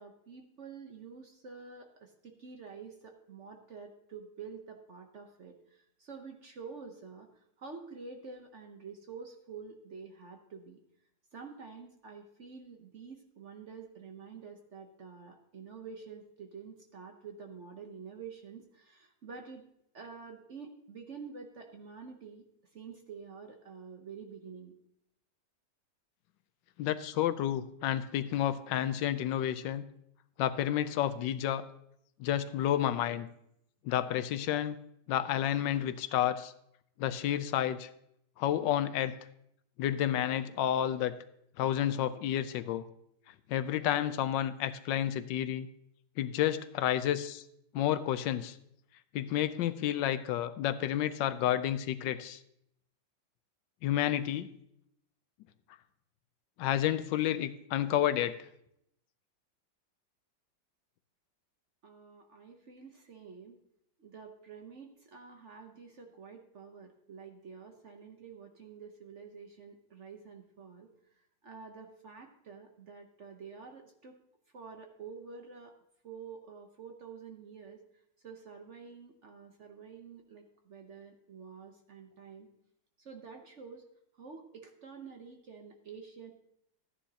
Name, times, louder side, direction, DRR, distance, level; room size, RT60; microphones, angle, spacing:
voice 1, 0.0-10.8 11.3-19.6 19.9-22.4 22.7-24.7 61.8-63.6 64.0-70.9 71.4-74.2 74.5-75.7 76.0-77.8 78.2-82.5 83.0-83.8 84.2-86.3, right 5 dB, 50° right, 4 dB, 1.0 m, -48 dB
voice 2, 26.8-29.8 30.4-31.7 32.2-33.3 33.8-34.8 35.1-36.5 37.0-37.9 38.4-39.1 39.8-41.1 41.6-42.8 43.5-45.7 46.2-47.4 47.7-48.6 49.1-52.4 53.8-54.5 56.6-58.4, left 11 dB, 80° left, 13 dB, 1.3 m, -30 dB
14.0 x 9.9 x 2.8 m, 0.75 s
omnidirectional pair, 2.0 m